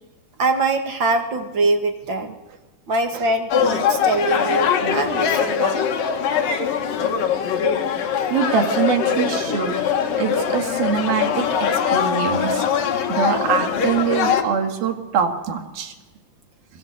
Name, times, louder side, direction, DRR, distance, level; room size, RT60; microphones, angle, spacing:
voice 1, 0.4-2.4 2.9-5.9, right 3 dB, 40° right, 6 dB, 1.9 m, -23 dB
sound 1, 3.5-14.4, left 7 dB, 65° left, 3.4 m, -22 dB
voice 2, 8.3-9.8 10.2-12.6 13.1-15.9, right 7 dB, 75° right, 5 dB, 4.0 m, -23 dB
28.5 x 21.5 x 8.1 m, 1.1 s
omnidirectional pair, 4.3 m